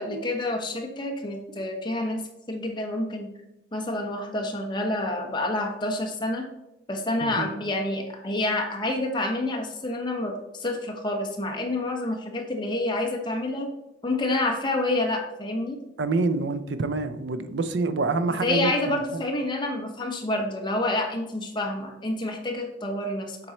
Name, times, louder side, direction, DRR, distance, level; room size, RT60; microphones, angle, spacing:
voice 1, 0.0-2.2 2.5-3.3 3.7-6.5 6.9-13.7 14.0-15.8 18.4-23.4, left 2 dB, 25° left, 1.0 m, -28 dB
voice 2, 16.0-19.2, right 3 dB, 70° right, 0.5 m, -27 dB
7.4 x 4.0 x 4.3 m
head